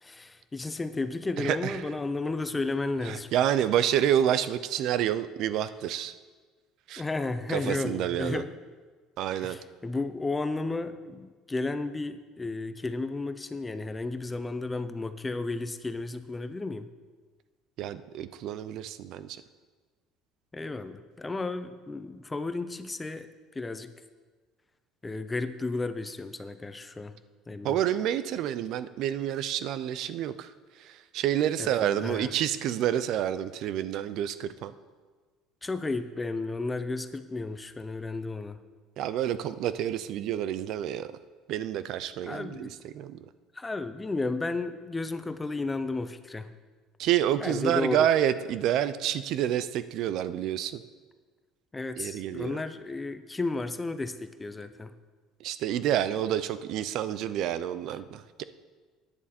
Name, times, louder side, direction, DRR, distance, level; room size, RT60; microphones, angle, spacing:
voice 1, 0.0-3.3 7.0-8.5 9.4-16.9 20.5-23.3 23.5-23.9 25.0-27.2 27.5-27.8 31.6-32.3 35.6-38.6 42.2-42.8 43.5-46.5 47.4-48.1 51.7-54.9, left 3 dB, 10° left, 11 dB, 0.5 m, -33 dB
voice 2, 1.4-1.8 3.0-6.1 6.9-7.0 7.5-8.4 9.2-9.6 17.8-19.3 27.6-30.5 30.8-34.7 39.0-41.1 41.5-43.2 47.0-50.8 52.0-52.6 55.4-58.4, right 10 dB, 55° right, 14 dB, 0.5 m, -28 dB
14.0 x 9.9 x 4.3 m, 1.4 s
cardioid pair, 155°, 0 cm